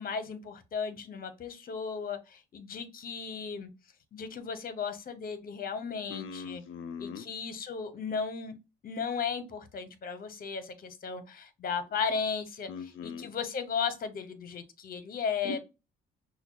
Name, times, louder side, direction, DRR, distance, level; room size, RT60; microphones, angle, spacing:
voice 1, 0.0-3.7 4.1-6.6 7.0-8.6 8.8-15.6, left 6 dB, 45° left, 0.8 m, -35 dB
voice 2, 6.1-7.3 12.7-13.3 15.4-15.6, left 6 dB, 80° left, 0.5 m, -40 dB
5.7 x 2.2 x 2.2 m
cardioid pair, 90°, 20 cm